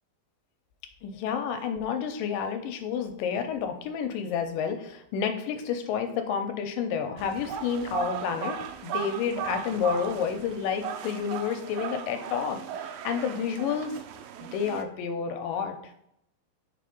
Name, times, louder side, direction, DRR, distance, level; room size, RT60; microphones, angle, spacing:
voice 1, 1.0-14.0 14.5-15.8, left 7 dB, 80° left, 6 dB, 2.2 m, -30 dB
sound 1, 7.2-14.8, right 8 dB, 85° right, 2.2 m, -37 dB
5.3 x 4.2 x 5.2 m, 0.77 s
omnidirectional pair, 4.1 m